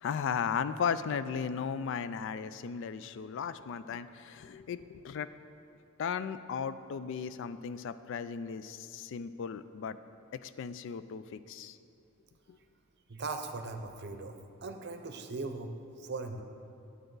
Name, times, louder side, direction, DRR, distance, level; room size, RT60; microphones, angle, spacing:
voice 1, 0.0-5.3 6.0-10.0 10.4-11.8 12.5-12.6, left 6 dB, 65° left, 13 dB, 0.3 m, -36 dB
voice 2, 13.1-14.3 14.6-16.4, right 3 dB, 55° right, 6 dB, 0.7 m, -39 dB
9.9 x 7.8 x 3.9 m, 2.6 s
head